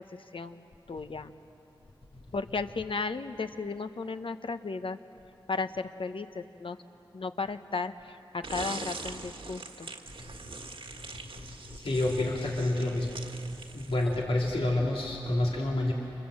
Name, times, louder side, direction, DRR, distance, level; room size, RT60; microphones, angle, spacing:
voice 1, 0.3-1.3 2.3-5.0 5.5-6.8 7.1-9.9, left 4 dB, 70° left, 9 dB, 1.0 m, -35 dB
sound 1, 8.4-14.3, right 3 dB, 70° right, 1.7 m, -42 dB
voice 2, 11.7-13.2 13.7-15.9, left 1 dB, 85° left, -2 dB, 2.8 m, -28 dB
29.5 x 26.0 x 7.7 m, 2.9 s
cardioid pair, 45°, 9 cm